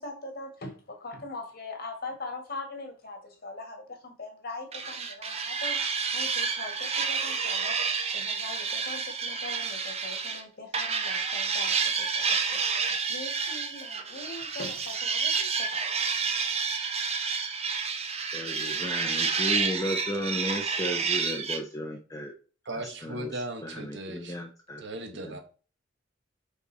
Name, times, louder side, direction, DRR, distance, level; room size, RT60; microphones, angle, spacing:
voice 1, 0.0-7.8 8.1-12.2 12.5-15.8, left 2 dB, 55° left, 3 dB, 1.8 m, -41 dB
sound 1, 4.7-10.4 10.7-21.6, right 5 dB, 35° right, 0.8 m, -29 dB
voice 2, 18.3-22.3 24.1-24.8, equal, 20° left, 1 dB, 0.7 m, -33 dB
voice 3, 22.6-24.4 24.8-25.4, right 1 dB, 65° right, 5 dB, 1.2 m, -37 dB
5.2 x 5.1 x 4.0 m, 0.38 s
head